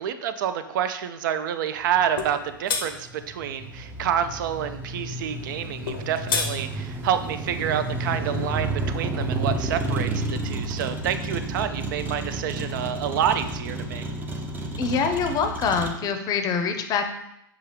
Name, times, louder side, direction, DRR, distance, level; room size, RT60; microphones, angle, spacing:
voice 1, 0.0-14.1, right 9 dB, 65° right, 11 dB, 0.4 m, -28 dB
Motor vehicle (road), 1.8-15.9, right 2 dB, 15° right, 0.5 m, -31 dB
sound 1, 2.2-2.3 2.7-2.9 5.9-6.5, left 5 dB, 85° left, 0.6 m, -26 dB
voice 2, 14.8-17.1, left 6 dB, 35° left, 6 dB, 0.6 m, -25 dB
6.3 x 2.4 x 3.3 m, 0.79 s
hypercardioid pair, 110°, 11 cm